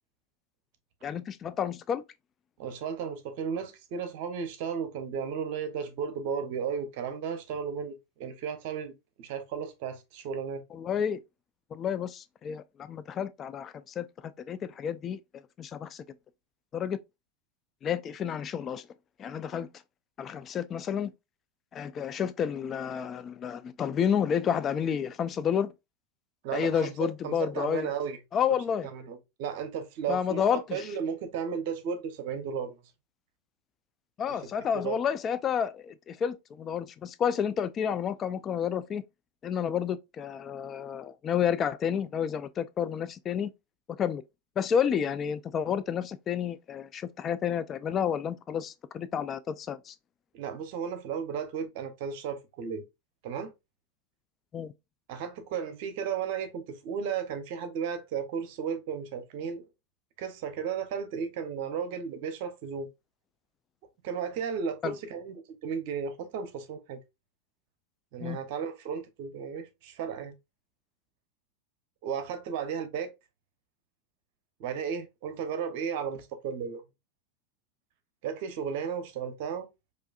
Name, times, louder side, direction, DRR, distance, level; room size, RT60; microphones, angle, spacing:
voice 1, 1.0-2.0 10.7-11.2 11.7-15.2 15.6-16.0 16.7-17.0 17.8-18.9 19.2-19.7 20.2-21.1 21.7-25.7 26.5-27.9 28.3-28.9 30.1-30.9 34.2-39.0 39.4-43.5 44.0-44.2 44.6-49.9 54.5-54.7 64.8-64.9 68.2-68.4, left 8 dB, 30° left, 0.4 m, -30 dB
voice 2, 2.6-8.9 9.2-10.6 26.4-28.2 28.5-28.6 28.9-30.4 30.7-32.8 34.3-34.4 34.7-35.0 50.3-52.8 53.2-53.5 55.1-59.6 60.2-62.9 64.0-67.0 68.1-70.3 72.0-73.1 74.6-76.8 78.2-79.7, right 7 dB, 55° right, 0.8 m, -34 dB
4.6 x 2.5 x 2.3 m
figure-of-eight pair, 90°, 0 cm